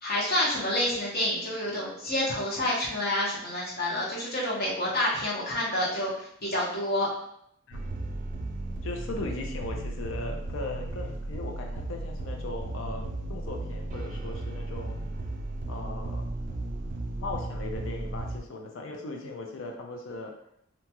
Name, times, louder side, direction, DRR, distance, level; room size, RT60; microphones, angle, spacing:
voice 1, 0.0-7.1, left 1 dB, 55° left, -5 dB, 1.0 m, -28 dB
sound 1, 7.7-18.4, right 2 dB, 40° right, 0.3 m, -35 dB
voice 2, 8.8-15.1 15.7-16.3 17.2-20.3, left 2 dB, 85° left, 2 dB, 0.5 m, -38 dB
2.8 x 2.3 x 2.9 m, 0.72 s
head